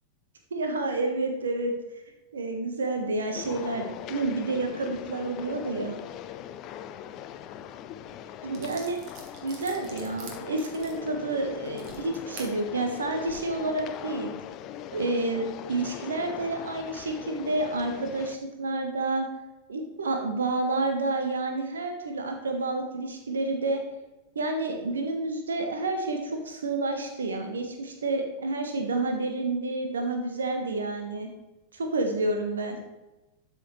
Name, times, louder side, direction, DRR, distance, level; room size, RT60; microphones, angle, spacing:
voice 1, 0.5-1.7 2.3-6.0 8.4-9.0 9.4-14.3 14.9-19.3 19.7-23.8 24.3-31.3 31.7-32.8, right 2 dB, 70° right, 4 dB, 1.2 m, -29 dB
sound 1, 3.4-18.4, left 10 dB, 35° left, 0.5 m, -41 dB
sound 2, 8.0-8.1 8.5-12.5 13.1-13.3, right 4 dB, 45° right, 2.0 m, -46 dB
12.5 x 6.3 x 3.2 m, 1.1 s
figure-of-eight pair, 90°, 0 cm